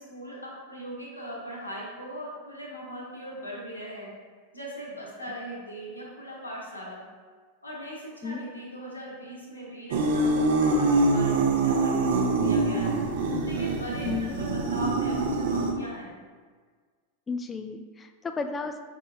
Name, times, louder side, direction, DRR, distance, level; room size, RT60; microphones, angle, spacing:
voice 1, 0.0-4.1 4.5-7.0 7.6-13.0 13.4-16.2, equal, 80° left, -4 dB, 1.2 m, -39 dB
sound 1, 9.9-15.7, right 2 dB, 55° right, 0.5 m, -24 dB
voice 2, 14.0-14.4 17.3-18.8, left 4 dB, 15° left, 7 dB, 0.3 m, -33 dB
5.6 x 3.5 x 2.5 m, 1.5 s
figure-of-eight pair, 90°, 0 cm